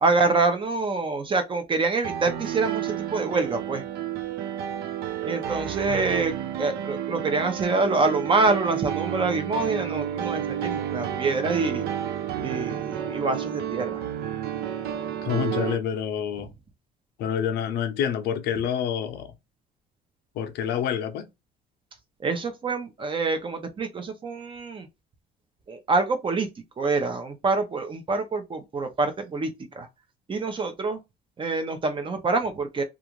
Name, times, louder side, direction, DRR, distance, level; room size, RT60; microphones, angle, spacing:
voice 1, 0.0-3.8 5.3-11.8 12.4-14.0 22.2-24.9 25.7-26.5 26.8-29.9 30.3-31.0 31.4-32.8, right 3 dB, 30° right, 0.7 m, -26 dB
Piano, 2.0-15.7, right 10 dB, 70° right, 0.4 m, -31 dB
voice 2, 15.2-16.5 17.2-19.3 20.3-21.3, left 8 dB, 75° left, 0.5 m, -27 dB
2.4 x 2.4 x 3.0 m
cardioid pair, 110°, 17 cm